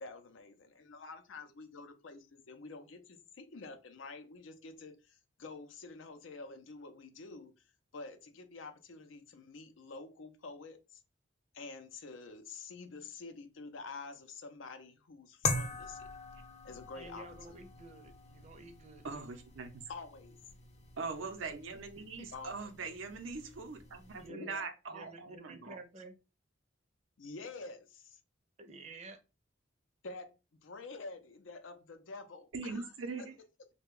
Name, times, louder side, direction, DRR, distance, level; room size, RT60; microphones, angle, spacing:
voice 1, 0.0-11.0 11.5-16.1 16.6-17.2 19.9-20.4 22.3-22.7 24.3-24.6 27.2-28.2 30.0-32.9 33.2-33.3, left 3 dB, 80° left, 0.5 m, -48 dB
sound 1, 15.4-24.3, left 3 dB, 35° left, 0.5 m, -42 dB
voice 2, 16.9-19.3 22.2-22.3 24.2-24.6 24.9-26.1 28.6-29.2, right 3 dB, 35° right, 0.5 m, -51 dB
voice 3, 19.0-19.8 21.0-25.8 32.5-33.3, right 4 dB, 90° right, 0.6 m, -42 dB
3.2 x 2.2 x 3.5 m
head